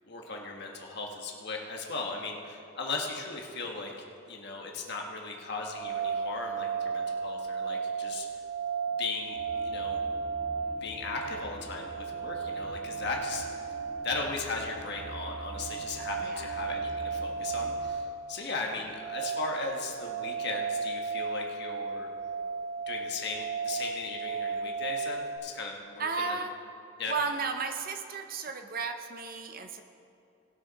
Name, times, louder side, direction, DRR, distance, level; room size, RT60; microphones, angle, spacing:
voice 1, 0.0-3.9 4.3-8.3 9.0-10.0 10.8-13.7 14.0-22.1 22.8-26.4 27.0-27.1, left 3 dB, 50° left, 0 dB, 1.4 m, -37 dB
sound 1, 5.7-25.4, right 5 dB, 85° left, 2.0 m, -35 dB
sound 2, 9.3-17.9, equal, 65° right, 2.3 m, -47 dB
voice 2, 26.0-26.5 27.1-29.8, right 4 dB, 45° right, 6 dB, 0.6 m, -34 dB
19.5 x 6.6 x 4.1 m, 2.6 s
head